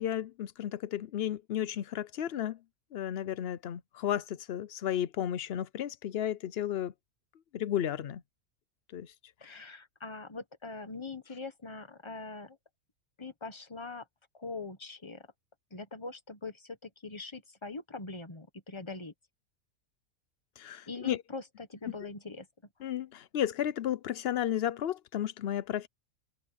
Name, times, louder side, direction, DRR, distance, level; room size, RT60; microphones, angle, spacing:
voice 1, 0.0-2.6 2.9-6.9 7.5-8.2 8.9-9.1 9.4-9.6 20.6-21.2 22.8-25.9, left 10 dB, 55° left, 0.7 m, -33 dB
voice 2, 9.4-12.6 13.2-14.1 14.3-15.3 15.7-19.1 20.9-22.5, left 3 dB, 20° left, 1.3 m, -42 dB
open air
omnidirectional pair, 1.5 m